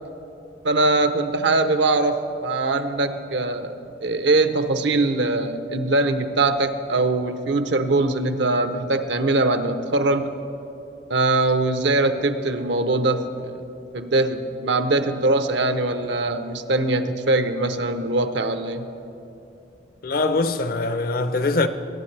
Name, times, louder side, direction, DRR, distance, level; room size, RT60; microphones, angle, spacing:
voice 1, 0.6-10.3 11.1-13.5 13.9-18.8, right 2 dB, 70° right, 0.7 m, -22 dB
voice 2, 20.0-21.7, left 3 dB, 50° left, 0.5 m, -22 dB
22.5 x 10.0 x 3.3 m
head